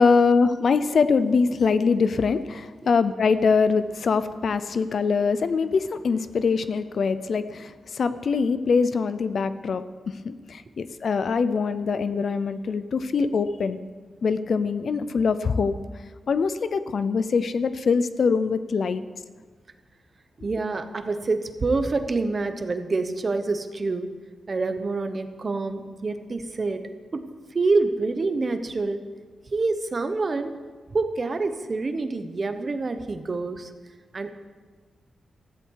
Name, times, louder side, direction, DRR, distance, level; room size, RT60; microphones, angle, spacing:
voice 1, 0.0-13.8 14.2-15.8 16.3-19.0, left 5 dB, 50° left, 13 dB, 0.6 m, -23 dB
voice 2, 20.4-24.1 24.5-27.3 27.5-29.0 29.5-30.6 30.9-33.7 34.1-34.3, right 3 dB, 30° right, 9 dB, 0.9 m, -27 dB
16.0 x 14.5 x 4.7 m, 1.4 s
wide cardioid pair, 180°, 0 cm